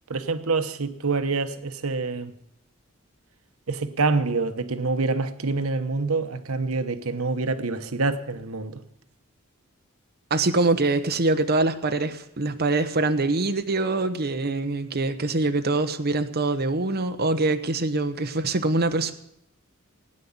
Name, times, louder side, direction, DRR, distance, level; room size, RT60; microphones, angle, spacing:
voice 1, 0.1-2.3 3.7-8.8, right 3 dB, 85° right, 1.0 m, -26 dB
voice 2, 10.3-19.1, right 2 dB, 50° right, 1.0 m, -24 dB
17.5 x 9.8 x 7.2 m
head